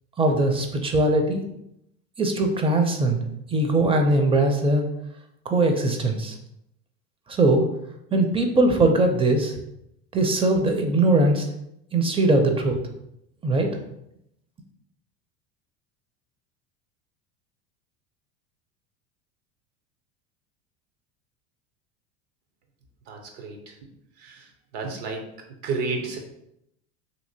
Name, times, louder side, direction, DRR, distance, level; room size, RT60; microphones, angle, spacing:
voice 1, 0.2-1.4 2.2-3.2 3.5-4.8 5.5-6.4 7.3-7.7 8.1-9.5 10.1-11.5 11.9-12.8 13.4-13.8, right 2 dB, 15° right, 4 dB, 0.5 m, -21 dB
voice 2, 23.1-23.6 24.7-25.2 25.6-26.2, right 4 dB, 75° right, 3 dB, 0.8 m, -30 dB
2.8 x 2.8 x 2.7 m, 0.78 s
hypercardioid pair, 90°, 34 cm